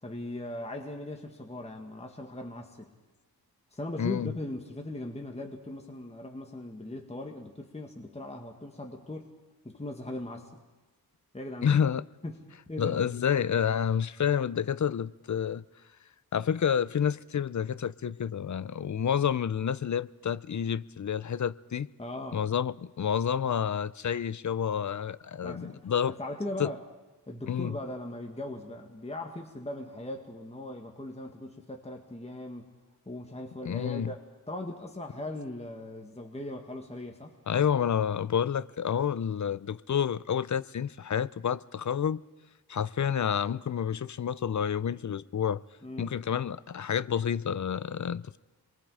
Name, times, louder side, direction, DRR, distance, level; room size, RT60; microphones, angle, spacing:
voice 1, 0.0-2.9 3.7-9.3 9.6-10.6 11.3-11.8 12.2-13.0 22.0-22.4 25.4-26.8 27.3-32.7 33.1-34.2 34.5-37.3 45.8-46.2, left 1 dB, 15° left, 2.0 m, -39 dB
voice 2, 4.0-4.3 11.6-12.1 12.8-15.6 16.3-21.9 22.3-26.2 26.6-26.7 27.5-27.8 33.7-34.1 37.5-42.2 42.7-45.6 46.0-48.4, left 8 dB, 50° left, 0.6 m, -29 dB
27.5 x 23.0 x 5.0 m
wide cardioid pair, 95°, 39 cm